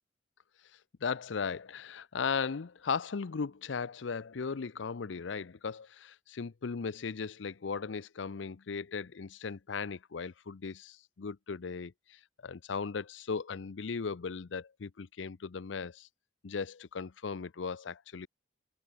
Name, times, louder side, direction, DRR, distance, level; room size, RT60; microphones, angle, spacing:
voice 1, 1.0-16.1 16.4-18.3, left 5 dB, 90° left, 0.6 m, -37 dB
head